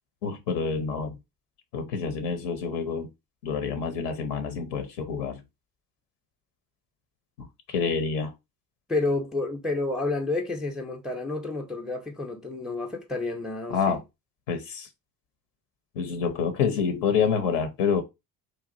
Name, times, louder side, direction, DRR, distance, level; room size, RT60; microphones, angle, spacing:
voice 1, 0.2-1.1 1.7-3.1 3.4-5.4 7.4-8.3 13.7-14.0 14.5-14.9 16.0-18.0, left 6 dB, 70° left, 0.7 m, -27 dB
voice 2, 8.9-14.0, left 2 dB, ahead, 0.4 m, -30 dB
3.0 x 2.4 x 2.6 m
figure-of-eight pair, 50°, 50 cm